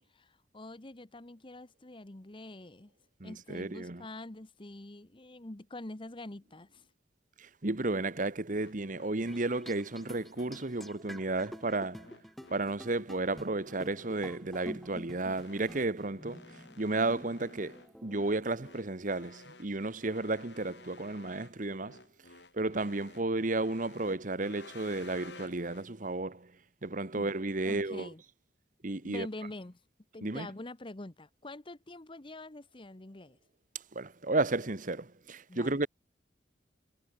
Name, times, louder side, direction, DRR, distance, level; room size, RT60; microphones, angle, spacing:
voice 1, 0.1-2.9 3.2-6.8 27.6-28.2 29.0-29.8 30.1-33.4 35.5-35.9, left 2 dB, 30° left, 1.1 m, -45 dB
voice 2, 3.2-4.0 7.4-12.1 12.5-22.0 22.5-26.5 26.8-28.1 28.8-29.3 30.2-30.5 33.9-35.9, right 2 dB, 45° right, 1.3 m, -33 dB
sound 1, 8.5-25.9, left 3 dB, 70° left, 5.7 m, -55 dB
sound 2, 9.3-18.7, equal, ahead, 5.8 m, -49 dB
head